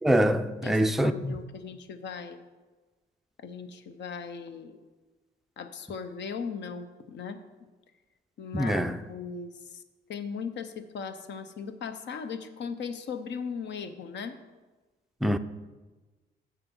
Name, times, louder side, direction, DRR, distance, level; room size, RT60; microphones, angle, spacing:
voice 1, 0.0-1.4 8.5-9.0 15.2-15.4, equal, ahead, 0.4 m, -24 dB
voice 2, 0.6-2.5 3.4-4.8 5.6-7.4 8.4-9.8 10.1-14.4, left 6 dB, 65° left, 0.8 m, -38 dB
7.1 x 6.7 x 5.4 m
cardioid pair, 90°, 20 cm